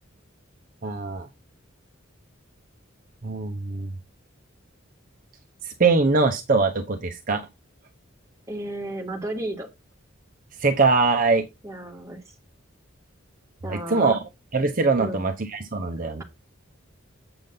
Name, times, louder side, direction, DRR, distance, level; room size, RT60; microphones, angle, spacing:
voice 1, 0.8-1.3 3.2-3.9 5.6-7.5 10.6-11.4 13.7-14.2 14.5-16.2, right 4 dB, 45° right, 0.7 m, -22 dB
voice 2, 8.5-9.7 11.6-12.2 13.6-14.2 15.0-15.2, right 1 dB, 15° right, 1.9 m, -33 dB
7.8 x 7.0 x 3.9 m
head